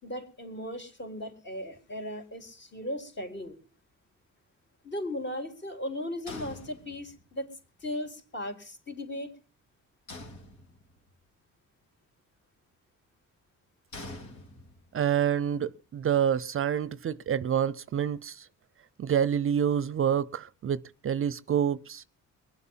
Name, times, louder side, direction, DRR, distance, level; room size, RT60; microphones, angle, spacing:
voice 1, 0.0-3.6 4.8-7.5 7.8-9.4, left 1 dB, 35° left, 4.3 m, -37 dB
sound 1, 6.3-7.4 10.1-11.1 13.9-15.0, left 2 dB, 70° left, 4.1 m, -45 dB
voice 2, 14.9-18.5 19.0-22.0, right 8 dB, 45° right, 0.6 m, -27 dB
23.5 x 8.1 x 5.6 m
cardioid pair, 90°, 30 cm